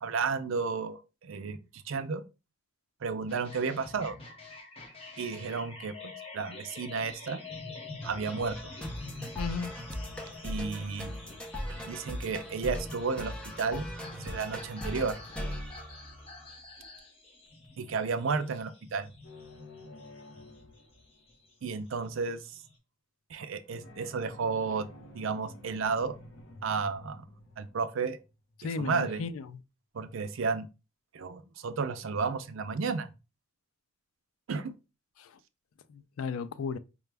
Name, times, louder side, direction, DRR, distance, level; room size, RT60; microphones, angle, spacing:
voice 1, 0.0-2.2 3.0-4.2 5.2-7.4 8.0-8.7 10.4-11.1 11.7-13.9 14.1-15.2 17.8-19.1 21.6-22.4 23.3-24.9 25.1-26.2 26.6-27.2 27.6-28.2 28.8-29.2 29.9-30.7 31.1-33.1 34.5-34.7, right 5 dB, 70° right, 0.4 m, -32 dB
sound 1, 3.3-22.8, left 3 dB, 30° left, 1.0 m, -47 dB
sound 2, 8.0-16.6, equal, 5° left, 0.6 m, -39 dB
voice 2, 9.4-9.7 28.6-29.6 35.2-35.3 35.9-36.8, left 5 dB, 85° left, 0.4 m, -35 dB
sound 3, 19.2-21.5 23.8-28.8, left 1 dB, 65° left, 1.0 m, -51 dB
4.8 x 2.3 x 3.3 m
head